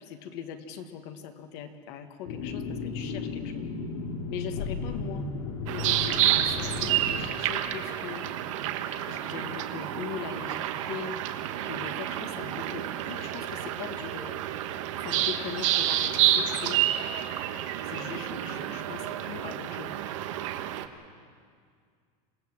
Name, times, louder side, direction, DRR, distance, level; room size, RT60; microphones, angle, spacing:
voice 1, 0.0-3.7 4.3-5.2 5.7-8.3 9.1-11.2 11.6-14.4 15.0-16.8 17.9-19.9, left 8 dB, 45° left, 7 dB, 1.4 m, -40 dB
sound 1, 2.2-7.2, left 4 dB, 80° left, 2.7 m, -34 dB
sound 2, 5.7-20.9, right 12 dB, 65° right, 1.3 m, -29 dB
27.0 x 17.5 x 7.3 m, 2.1 s
supercardioid pair, 180°, 17 cm